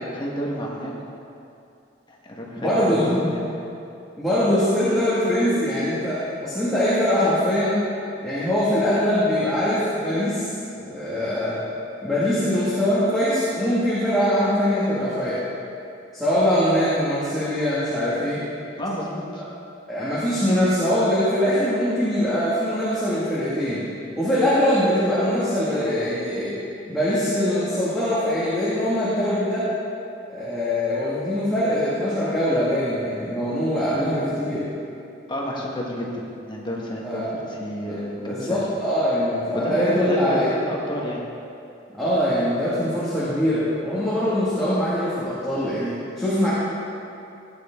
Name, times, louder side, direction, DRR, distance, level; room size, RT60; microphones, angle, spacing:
voice 1, 0.1-1.1 2.1-3.4 18.8-19.4 35.3-36.2 36.5-38.6 39.5-41.2, equal, 25° left, -3 dB, 1.6 m, -30 dB
voice 2, 2.6-3.3 4.2-7.8 8.2-10.5 10.7-11.6 12.0-15.4 16.1-18.4 19.9-23.8 24.2-26.5 26.9-29.7 30.3-34.7 37.0-37.3 37.9-40.5 41.9-46.5, equal, ahead, -11 dB, 2.1 m, -22 dB
16.5 x 9.3 x 3.8 m, 2.6 s
head